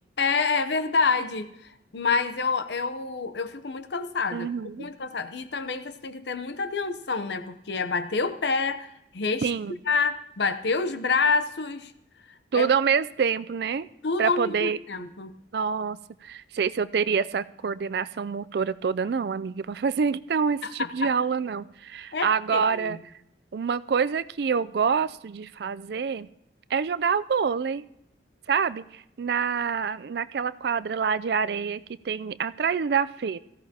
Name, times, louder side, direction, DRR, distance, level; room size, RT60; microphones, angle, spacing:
voice 1, 0.2-1.5 1.9-4.5 4.8-9.5 9.9-11.9 12.5-12.7 14.0-15.3 20.6-21.1 22.1-23.0, left 4 dB, 70° left, 11 dB, 0.7 m, -27 dB
voice 2, 4.3-4.9 9.4-9.7 12.5-13.9 14.2-14.8 15.5-23.0 23.5-26.3 26.7-27.8 28.5-33.4, right 6 dB, 60° right, 15 dB, 0.4 m, -26 dB
17.5 x 14.5 x 2.8 m, 0.80 s
head